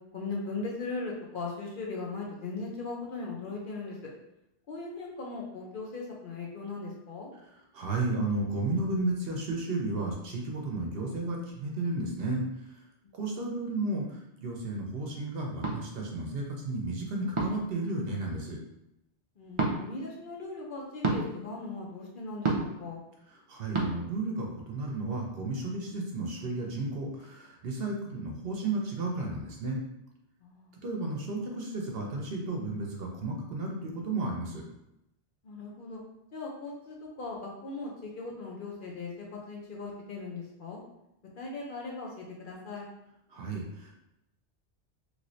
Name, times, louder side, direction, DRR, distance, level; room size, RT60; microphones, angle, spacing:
voice 1, 0.1-4.1 4.7-7.3 13.0-13.6 19.4-23.0 30.4-30.8 35.4-36.0 36.3-40.8 41.4-42.9, left 3 dB, 55° left, -2 dB, 0.7 m, -39 dB
voice 2, 7.7-12.4 13.2-18.6 23.5-29.8 30.8-34.6 43.3-43.9, right 2 dB, 60° right, 0 dB, 0.8 m, -33 dB
sound 1, 15.6-15.8 17.3-17.7 19.5-19.7 21.0-21.2 22.4-22.8 23.7-23.9, right 3 dB, 45° right, 0.4 m, -28 dB
3.1 x 3.1 x 2.6 m, 0.85 s
omnidirectional pair, 1.2 m